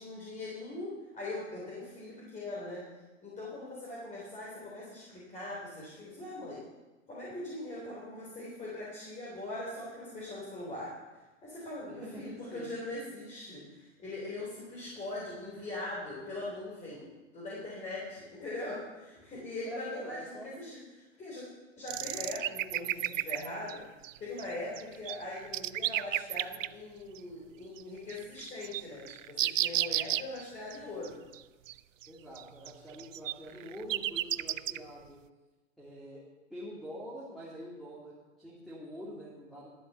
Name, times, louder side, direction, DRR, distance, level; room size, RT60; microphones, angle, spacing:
voice 1, 0.0-2.8 3.2-6.6 7.1-10.9 11.4-21.4 21.8-23.8 24.2-31.2, left 2 dB, 20° left, -6 dB, 3.6 m, -41 dB
voice 2, 12.0-12.7 14.5-14.6 19.6-20.5 32.1-35.2 35.8-36.2 36.5-39.7, equal, ahead, -7 dB, 2.7 m, -45 dB
sound 1, 21.9-23.8 24.0-24.4 24.8-26.7 27.2-27.3 27.8-27.9 28.1-30.4 30.7-30.8 31.0-31.1 31.3-31.4 31.7-32.1 32.4-34.8, right 13 dB, 80° right, 0.5 m, -33 dB
12.0 x 7.8 x 6.8 m, 1.2 s
hypercardioid pair, 125°, 38 cm